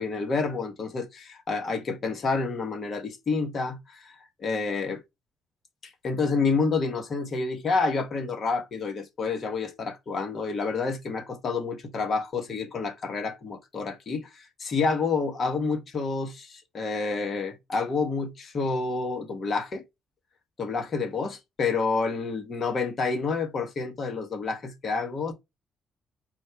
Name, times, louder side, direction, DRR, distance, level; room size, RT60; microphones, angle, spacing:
voice 1, 0.0-5.0 5.8-19.8 20.6-25.3, left 4 dB, 50° left, 1.7 m, -29 dB
4.4 x 2.6 x 4.6 m
cardioid pair, 90°, 0 cm